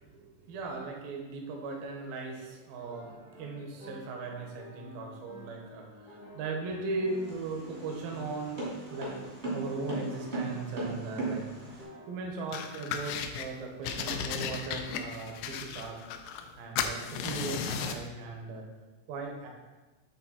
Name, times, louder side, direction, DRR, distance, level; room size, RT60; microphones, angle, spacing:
voice 1, 0.0-8.6 8.9-9.1 9.5-16.0 16.6-18.7 19.1-19.5, right 3 dB, 75° right, 1 dB, 2.1 m, -38 dB
sound 1, 2.8-12.2, left 2 dB, 60° left, 1.4 m, -49 dB
sound 2, 7.1-11.8, right 2 dB, 45° right, 0.8 m, -37 dB
sound 3, 12.5-13.5 13.8-16.5 16.8-18.1, left 7 dB, 85° left, 2.4 m, -35 dB
8.6 x 4.0 x 4.2 m, 1.2 s
omnidirectional pair, 5.5 m